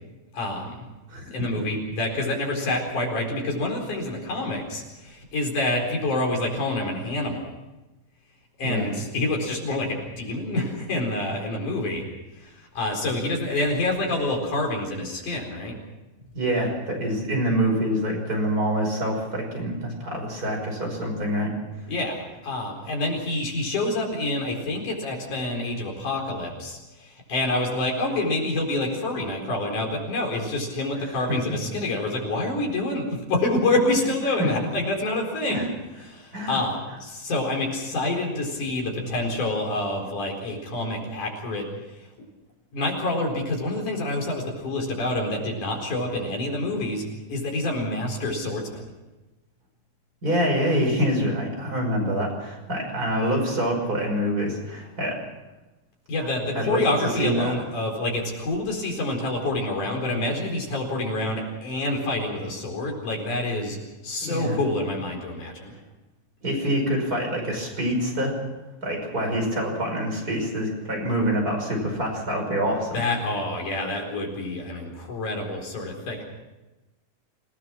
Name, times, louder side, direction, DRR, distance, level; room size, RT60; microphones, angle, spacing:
voice 1, 0.3-0.9 1.3-7.4 8.6-12.0 12.4-15.8 21.9-35.7 36.0-41.7 42.7-47.0 47.3-48.9 56.1-63.8 64.0-65.7 72.9-76.2, left 2 dB, 60° left, 1 dB, 5.8 m, -27 dB
voice 2, 16.3-21.5 31.3-31.4 34.4-34.5 35.5-35.7 36.3-36.6 50.2-55.2 56.5-56.8 57.2-57.5 64.2-64.6 66.4-68.3 68.8-73.0, equal, 25° right, 0 dB, 6.0 m, -26 dB
27.5 x 18.0 x 6.2 m, 1.1 s
omnidirectional pair, 3.9 m